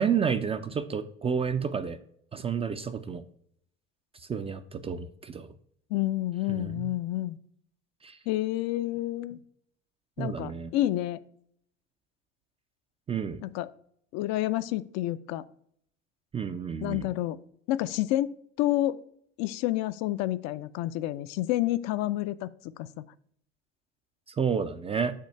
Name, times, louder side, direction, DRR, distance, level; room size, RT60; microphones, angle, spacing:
voice 1, 0.0-2.0 2.3-3.2 4.3-5.5 6.5-6.9 8.0-8.2 10.2-10.7 13.1-13.4 16.3-17.1 24.4-25.1, right 6 dB, 15° right, 10 dB, 0.3 m, -30 dB
voice 2, 5.9-7.4 8.3-9.4 10.2-11.2 13.4-13.7 14.1-15.4 16.8-17.4 17.7-19.0 19.4-22.5 22.8-22.9, left 15 dB, 50° left, 14 dB, 0.4 m, -29 dB
7.3 x 2.5 x 5.6 m, 0.66 s
hypercardioid pair, 70°, 37 cm